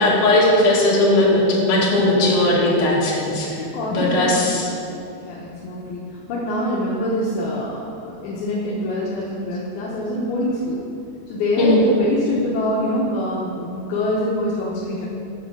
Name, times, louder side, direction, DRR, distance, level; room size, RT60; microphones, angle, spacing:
voice 1, 0.0-3.5 3.9-4.6 11.6-11.8, left 1 dB, 55° left, -6 dB, 3.2 m, -17 dB
voice 2, 3.6-10.8 11.3-15.1, left 1 dB, 75° left, -6 dB, 2.8 m, -25 dB
9.8 x 5.5 x 6.1 m, 2.7 s
omnidirectional pair, 4.5 m